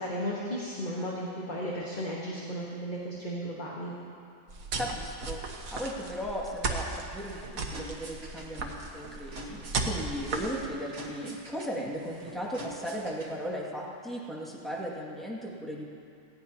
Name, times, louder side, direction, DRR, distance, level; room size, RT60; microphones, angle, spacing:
voice 1, 0.0-3.9, equal, 35° left, -4 dB, 1.5 m, -34 dB
sound 1, 4.5-10.7, right 3 dB, 80° right, 1.6 m, -36 dB
voice 2, 4.8-15.9, equal, ahead, -5 dB, 2.1 m, -37 dB
sound 2, 7.1-13.5, right 1 dB, 60° right, 1.8 m, -47 dB
19.0 x 16.0 x 2.9 m, 2.5 s
omnidirectional pair, 1.4 m